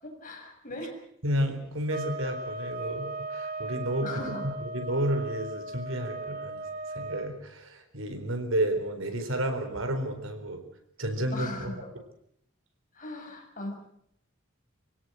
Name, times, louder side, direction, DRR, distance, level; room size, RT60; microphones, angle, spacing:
voice 1, 0.0-0.9 4.0-4.5 11.3-11.7 12.9-13.8, left 1 dB, 40° left, 2 dB, 6.6 m, -38 dB
voice 2, 1.2-4.2 4.7-6.6 6.9-10.6 11.0-11.7, right 1 dB, 80° right, 7 dB, 4.2 m, -31 dB
sound 1, 1.9-7.3, right 2 dB, 45° right, 1.9 m, -37 dB
26.0 x 17.0 x 7.8 m, 0.73 s
head